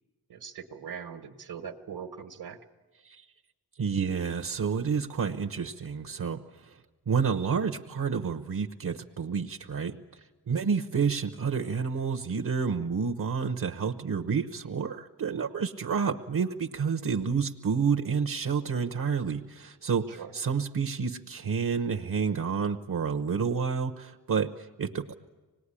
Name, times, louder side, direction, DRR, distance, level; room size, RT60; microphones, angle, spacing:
voice 1, 0.3-2.6 20.1-20.3, right 7 dB, 75° right, 4 dB, 1.5 m, -41 dB
voice 2, 3.8-6.7 7.1-10.0 10.5-25.1, right 6 dB, 55° right, 7 dB, 1.0 m, -29 dB
25.5 x 19.5 x 9.9 m, 1.3 s
wide cardioid pair, 145°, 39 cm